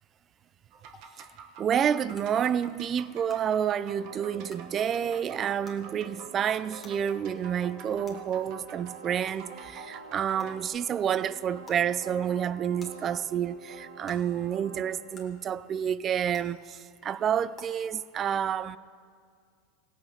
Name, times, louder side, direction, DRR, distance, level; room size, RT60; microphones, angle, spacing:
sound 1, 0.7-10.7, right 6 dB, 55° right, 1.4 m, -48 dB
sound 2, 0.9-1.0 2.1-2.2 3.3-3.4 4.5-4.6 5.6-5.8 6.8-6.9 8.0-8.1 9.3-9.4 10.4-10.5 11.6-11.8 12.8-12.9 14.1-14.2 15.1-15.2 16.3-16.4 17.5-17.6, left 3 dB, 20° left, 2.0 m, -48 dB
voice 1, 1.6-18.8, right 8 dB, 30° right, 0.4 m, -29 dB
sound 3, 3.9-15.2, right 4 dB, 90° right, 1.6 m, -47 dB
17.0 x 8.4 x 5.9 m
supercardioid pair, 130°, 0 cm